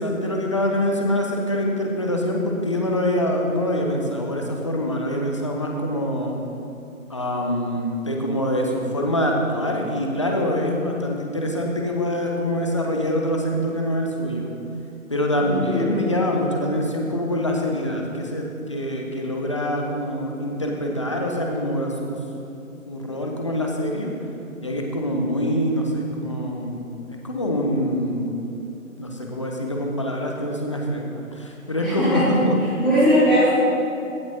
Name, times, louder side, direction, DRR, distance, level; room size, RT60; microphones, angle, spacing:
voice 1, 0.0-6.4 7.1-14.5 15.1-22.2 22.8-24.1 24.6-28.3 29.0-32.6, equal, 25° left, 0 dB, 0.5 m, -25 dB
voice 2, 15.4-16.1 31.8-32.2 32.8-33.5, equal, 5° left, -17 dB, 1.3 m, -20 dB
15.5 x 7.0 x 2.7 m, 2.7 s
figure-of-eight pair, 145°, 41 cm